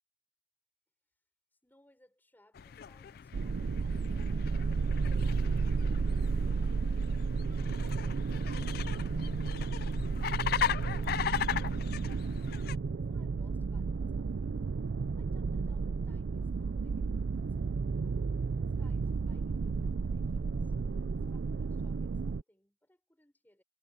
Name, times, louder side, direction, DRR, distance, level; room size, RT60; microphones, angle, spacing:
voice 1, 1.5-7.1 12.9-14.8 15.1-18.1 18.8-23.6, left 1 dB, 10° left, 6.4 m, -68 dB
sound 1, 2.6-12.8, left 8 dB, 60° left, 0.4 m, -38 dB
sound 2, 3.3-22.4, right 4 dB, 90° right, 0.4 m, -32 dB
head